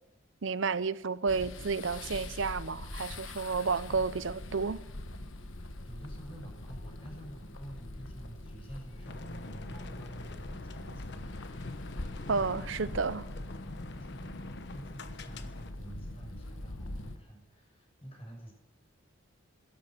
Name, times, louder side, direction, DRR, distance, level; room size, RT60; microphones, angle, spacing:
voice 1, 0.4-4.8 12.3-13.3, right 4 dB, 65° right, 0.7 m, -31 dB
sound 1, 1.3-17.2, left 1 dB, 70° left, 1.4 m, -43 dB
voice 2, 5.8-11.3 13.6-18.5, right 1 dB, 30° left, 6.2 m, -48 dB
sound 2, 9.0-15.7, left 2 dB, 55° left, 1.1 m, -45 dB
16.0 x 13.5 x 5.9 m
head